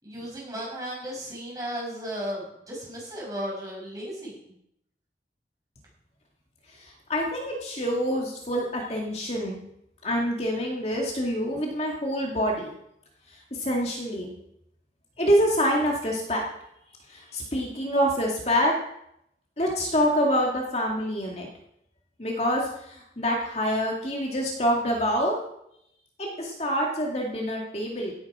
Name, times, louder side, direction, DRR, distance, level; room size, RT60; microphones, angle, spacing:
voice 1, 0.0-4.4, equal, 20° right, -4 dB, 6.7 m, -35 dB
voice 2, 6.8-9.6 10.0-12.7 13.6-14.3 15.2-16.4 17.1-18.7 19.6-21.5 22.2-25.3 26.2-28.1, equal, 35° left, -1 dB, 2.3 m, -26 dB
17.0 x 9.6 x 4.9 m, 0.77 s
head